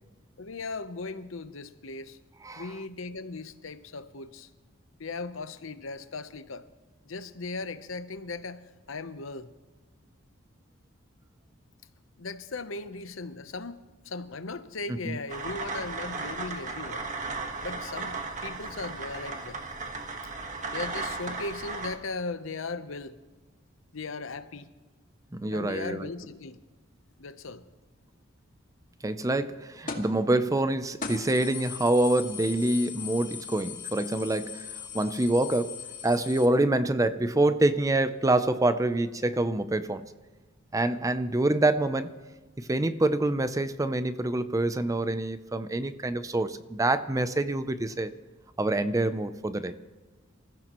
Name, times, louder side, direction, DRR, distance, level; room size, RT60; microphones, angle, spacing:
voice 1, 0.4-2.2 2.6-4.5 5.0-6.7 7.1-9.5 12.2-17.1 17.6-19.6 20.7-23.2 23.9-24.7 25.5-26.6 27.2-27.7, left 3 dB, 75° left, 0.9 m, -38 dB
sound 1, 15.3-22.0, right 3 dB, 40° right, 1.4 m, -35 dB
voice 2, 25.3-26.1 29.0-40.1 40.7-42.1 42.6-48.1 48.6-49.8, right 2 dB, 15° right, 0.5 m, -26 dB
sound 2, 29.9-30.2 30.6-30.7 31.0-36.5, left 7 dB, 40° left, 2.0 m, -39 dB
27.0 x 15.0 x 3.0 m
head